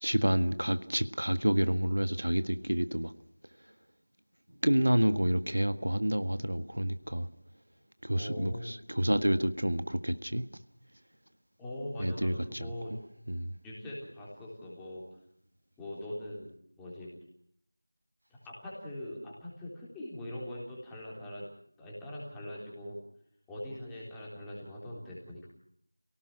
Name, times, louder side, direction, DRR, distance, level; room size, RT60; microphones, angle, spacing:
voice 1, 0.0-3.1 4.6-7.3 8.0-10.5 12.0-13.0 13.3-13.5, equal, 70° right, 1.7 m, -29 dB
voice 2, 8.1-8.7 11.6-12.9 13.6-15.0 15.8-16.5 16.8-17.1 18.3-21.5 21.8-23.0 23.5-25.5, left 1 dB, 5° left, 3.8 m, -41 dB
29.0 x 18.0 x 6.2 m
figure-of-eight pair, 170°, 0 cm